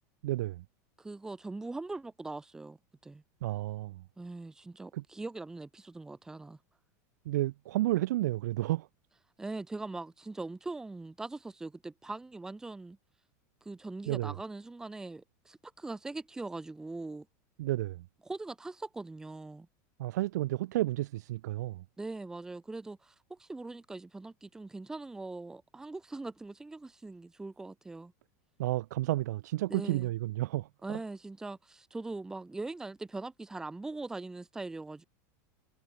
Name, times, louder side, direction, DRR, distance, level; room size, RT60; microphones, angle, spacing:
voice 1, 0.2-0.6 3.4-4.0 4.9-5.0 7.3-8.9 14.1-14.3 17.6-18.0 20.0-21.8 28.6-31.0, right 16 dB, 80° right, 2.4 m, -31 dB
voice 2, 1.0-2.8 3.0-3.2 4.2-6.6 9.4-13.0 13.6-17.3 18.3-19.7 22.0-28.1 29.7-30.1 30.8-35.0, right 3 dB, 5° right, 4.0 m, -41 dB
supercardioid pair, 175°, 9 cm